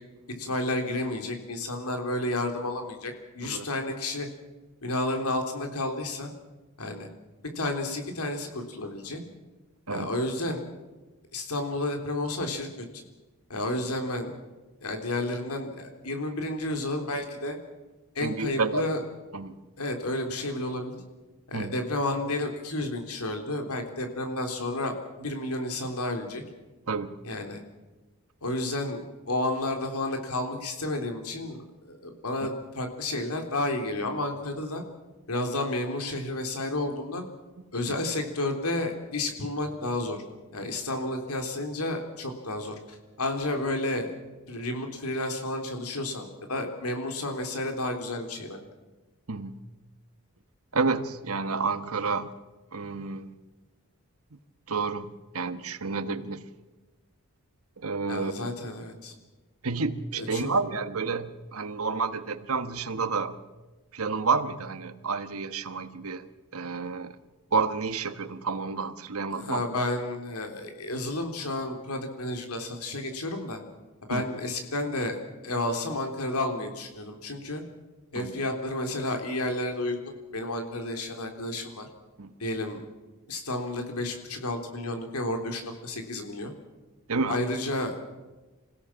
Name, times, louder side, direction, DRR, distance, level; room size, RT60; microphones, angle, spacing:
voice 1, 0.4-4.3 4.8-6.3 6.8-7.1 7.6-9.2 9.9-10.6 11.3-12.7 12.9-13.0 13.5-14.4 14.8-17.6 18.2-19.0 19.8-21.0 21.5-26.4 27.2-27.6 28.4-34.8 35.3-37.3 37.7-40.2 40.5-44.1 44.5-48.6 58.1-59.1 60.1-60.5 69.3-73.6 74.1-75.2 75.4-77.6 78.1-80.0 80.3-81.9 82.4-82.9 83.3-86.5 87.3-87.9, left 1 dB, 85° left, 4 dB, 3.6 m, -31 dB
voice 2, 18.2-18.8 19.3-19.5 21.5-21.7 26.9-27.1 37.9-38.0 49.3-49.6 50.7-52.3 52.7-53.4 54.7-56.5 57.8-58.5 59.6-63.4 63.9-66.3 66.5-67.2 67.5-69.6 74.1-74.3 78.1-78.4 82.2-82.3 87.1-87.4, right 4 dB, 75° right, 11 dB, 1.3 m, -30 dB
27.0 x 16.5 x 7.4 m, 1.2 s
head